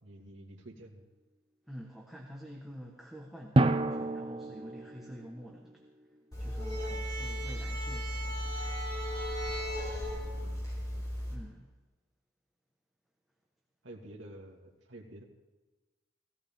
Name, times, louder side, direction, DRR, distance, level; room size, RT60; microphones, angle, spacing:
voice 1, 0.0-1.0 9.8-11.1 13.8-15.2, right 1 dB, 70° right, 0 dB, 2.2 m, -50 dB
voice 2, 1.7-5.8 6.4-8.6 11.3-11.7, equal, ahead, -2 dB, 1.3 m, -48 dB
Drum, 3.6-5.9, right 2 dB, 25° right, 0.5 m, -29 dB
sound 1, 6.3-11.4, equal, 20° left, 3.7 m, -35 dB
17.5 x 16.0 x 3.7 m, 1.2 s
head